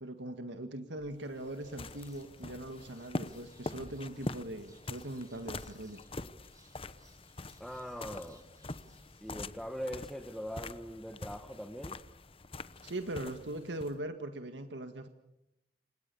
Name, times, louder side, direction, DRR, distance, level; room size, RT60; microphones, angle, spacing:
voice 1, 0.0-6.0 12.8-15.1, right 1 dB, 85° right, 7 dB, 1.9 m, -41 dB
sound 1, 1.0-14.0, left 2 dB, 30° left, 1.0 m, -44 dB
sound 2, 1.3-9.4, right 2 dB, 20° right, 6.1 m, -64 dB
voice 2, 7.6-8.4 9.2-12.0, equal, ahead, 6 dB, 1.4 m, -41 dB
29.5 x 26.5 x 7.0 m, 0.86 s
head